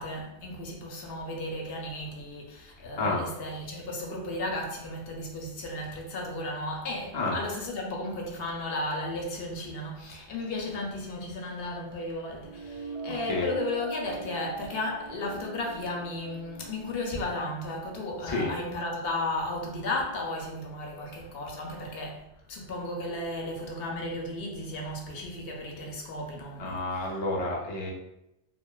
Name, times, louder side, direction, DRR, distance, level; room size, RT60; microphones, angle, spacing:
voice 1, 0.0-27.1, left 2 dB, 70° left, 0.7 m, -34 dB
sound 1, 12.4-18.4, right 4 dB, 75° right, 1.0 m, -43 dB
voice 2, 26.6-27.9, left 2 dB, 50° left, 0.3 m, -29 dB
2.9 x 2.1 x 2.2 m
omnidirectional pair, 1.1 m